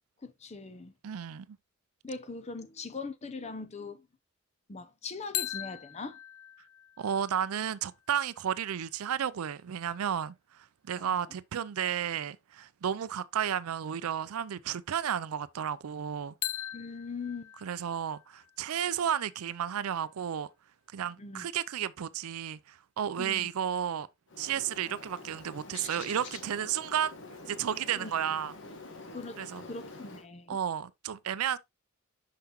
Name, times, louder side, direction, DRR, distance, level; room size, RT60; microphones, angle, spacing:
voice 1, 0.2-0.9 2.0-4.1 4.7-6.2 11.0-11.2 16.7-17.5 21.2-21.5 23.2-23.5 27.9-28.1 29.1-29.4 29.6-30.6, left 4 dB, 30° left, 0.6 m, -41 dB
voice 2, 1.0-1.5 7.0-16.3 17.6-20.5 20.9-24.1 24.4-27.1 27.5-28.5 29.4-29.6 30.5-31.6, right 9 dB, 80° right, 0.4 m, -32 dB
sound 1, 5.3-9.2 16.4-20.3, left 13 dB, 90° left, 0.5 m, -42 dB
Bird, 24.3-30.3, left 3 dB, 55° left, 1.2 m, -46 dB
5.7 x 5.7 x 2.9 m
head